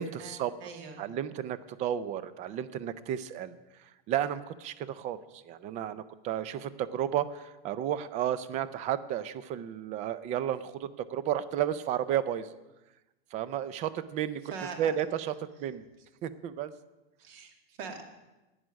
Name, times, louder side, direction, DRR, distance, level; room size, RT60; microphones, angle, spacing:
voice 1, 0.0-0.5 1.0-3.5 3.8-12.6 13.3-14.4 14.8-15.8 16.2-16.7, right 10 dB, 25° right, 16 dB, 0.4 m, -33 dB
voice 2, 0.6-1.0 14.5-14.9 17.2-18.0, right 5 dB, 65° right, 3 dB, 2.3 m, -42 dB
11.0 x 9.3 x 6.2 m, 1.1 s
supercardioid pair, 150°, 31 cm